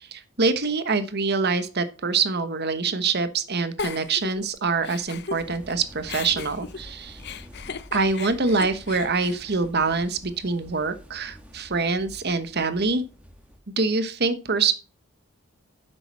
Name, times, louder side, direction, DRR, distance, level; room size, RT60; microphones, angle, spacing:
voice 1, 0.0-7.2 7.9-13.0 13.8-14.7, right 4 dB, 50° right, 11 dB, 1.1 m, -25 dB
Giggle, 3.8-5.7 6.1-10.3, left 5 dB, 50° left, 0.7 m, -36 dB
sound 1, 5.4-13.6, equal, 5° right, 1.7 m, -47 dB
10.0 x 7.9 x 4.3 m, 0.33 s
head